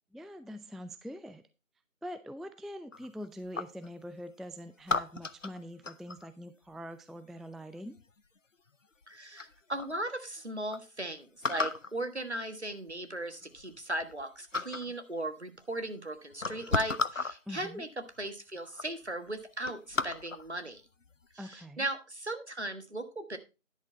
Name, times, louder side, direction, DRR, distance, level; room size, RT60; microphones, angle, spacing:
voice 1, 0.1-1.4 2.0-8.0 17.5-17.8 21.4-21.8, equal, ahead, 11 dB, 0.4 m, -44 dB
sound 1, 2.9-3.9 4.9-6.3 8.0-8.4 9.0-9.1 9.4-9.9 10.4-10.5 10.7-10.8 11.4-11.9 12.9-13.0 13.4-14.2 14.5-14.9 15.8-15.9 16.3-17.4 18.2-18.3 18.6-18.9 19.3-20.5 21.0-21.3, left 4 dB, 70° left, 0.7 m, -34 dB
voice 2, 9.1-17.9 18.2-20.8 21.3-23.4, right 1 dB, 55° right, 8 dB, 1.5 m, -37 dB
10.5 x 6.4 x 4.4 m, 0.29 s
figure-of-eight pair, 175°, 40 cm